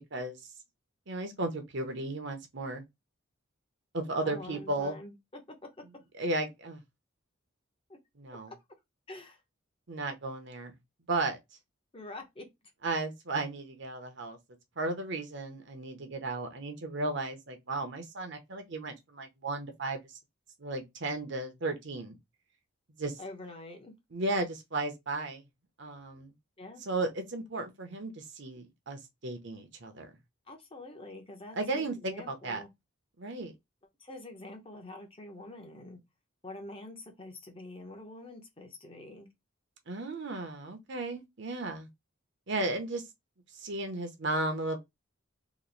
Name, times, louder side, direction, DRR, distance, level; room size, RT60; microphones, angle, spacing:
voice 1, 1.1-2.8 3.9-4.9 6.2-6.8 8.2-8.5 9.9-10.7 11.1-11.4 12.8-14.4 14.8-20.0 20.6-22.2 23.0-23.1 24.1-25.4 25.8-26.3 26.9-30.1 31.6-32.6 33.2-33.5 39.9-41.9 42.5-43.0 43.6-44.8, right 2 dB, 55° right, 0.8 m, -34 dB
voice 2, 4.2-5.6 7.9-8.0 9.1-9.4 11.9-12.5 23.2-23.9 26.6-26.8 30.5-32.7 34.0-36.0 36.4-39.3, left 2 dB, 25° left, 0.8 m, -46 dB
3.0 x 2.6 x 3.8 m
head